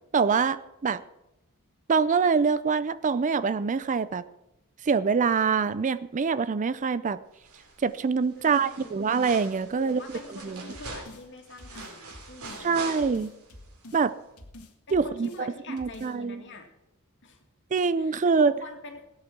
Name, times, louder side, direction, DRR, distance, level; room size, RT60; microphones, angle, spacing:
voice 1, 0.1-1.0 1.9-4.2 4.8-7.2 7.8-10.0 10.4-10.6 12.6-13.3 13.9-14.1 14.9-16.4 17.7-18.5, right 5 dB, 35° right, 16 dB, 0.4 m, -25 dB
sound 1, 7.4-7.9 8.2-13.5 13.8-13.9, right 3 dB, 75° right, 3.3 m, -43 dB
voice 2, 8.4-9.1 9.8-12.9 14.9-16.7 17.2-17.4 18.0-19.0, left 2 dB, 55° left, 3 dB, 2.4 m, -45 dB
sound 2, 10.7-11.3 11.6-12.7 13.0-14.0 14.4-15.4 15.8-16.1, left 1 dB, 80° left, 2.0 m, -47 dB
16.5 x 8.9 x 6.0 m, 0.91 s
head